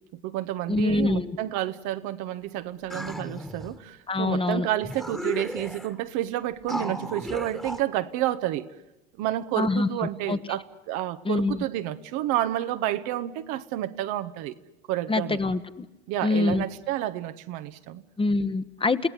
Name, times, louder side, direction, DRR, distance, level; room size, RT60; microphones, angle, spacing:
voice 1, 0.1-8.7 9.2-14.5 14.9-15.4 16.1-18.0, right 13 dB, 65° right, 1.3 m, -30 dB
voice 2, 0.7-1.3 4.1-4.7 9.6-9.9 10.3-10.4 11.2-11.6 15.1-15.9 16.2-16.6 18.2-19.1, left 3 dB, 15° left, 1.2 m, -25 dB
sound 1, 2.9-3.8 4.5-4.6 4.8-6.0 6.7-7.8, equal, ahead, 1.7 m, -34 dB
29.5 x 17.5 x 9.8 m
supercardioid pair, 95°, 31 cm